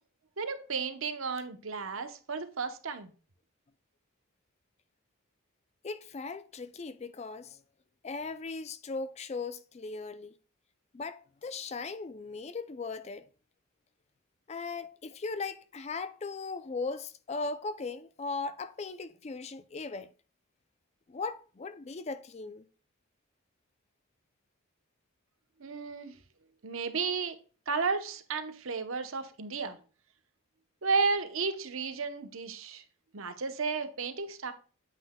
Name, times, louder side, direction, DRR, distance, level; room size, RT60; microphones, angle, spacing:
voice 1, 0.4-3.1 25.6-26.2 26.6-27.4 27.7-29.8 30.8-32.8 33.1-34.5, right 4 dB, 70° right, 0.8 m, -33 dB
voice 2, 5.8-7.6 8.0-10.3 10.9-13.3 14.5-20.1 21.1-22.6, left 4 dB, 30° left, 0.3 m, -38 dB
8.6 x 7.7 x 2.2 m
head